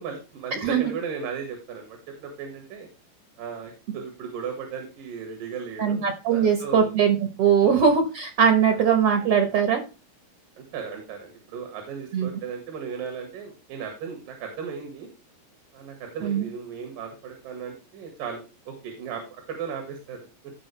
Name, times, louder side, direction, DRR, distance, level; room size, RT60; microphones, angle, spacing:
voice 1, 0.0-2.9 3.4-6.1 6.3-6.9 7.6-7.9 8.7-8.8 9.4-9.5 10.6-15.1 15.7-20.5, right 6 dB, 80° right, 3 dB, 3.5 m, -36 dB
voice 2, 0.5-0.9 5.8-9.8 12.1-12.3 16.2-16.5, right 7 dB, 60° right, 6 dB, 1.7 m, -21 dB
15.0 x 5.2 x 3.3 m, 0.31 s
omnidirectional pair, 3.8 m